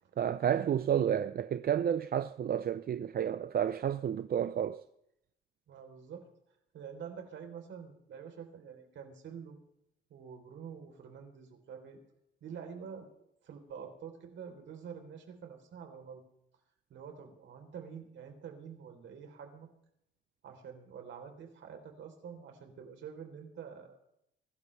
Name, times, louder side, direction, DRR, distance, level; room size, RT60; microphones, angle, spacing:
voice 1, 0.2-4.8, right 9 dB, 50° right, 0.6 m, -31 dB
voice 2, 5.7-6.2 6.7-9.6 10.1-12.0 12.4-13.1 13.4-16.2 16.9-19.7 20.4-24.0, right 7 dB, 70° right, 3.8 m, -47 dB
23.5 x 12.5 x 3.4 m
cardioid pair, 90°, 20 cm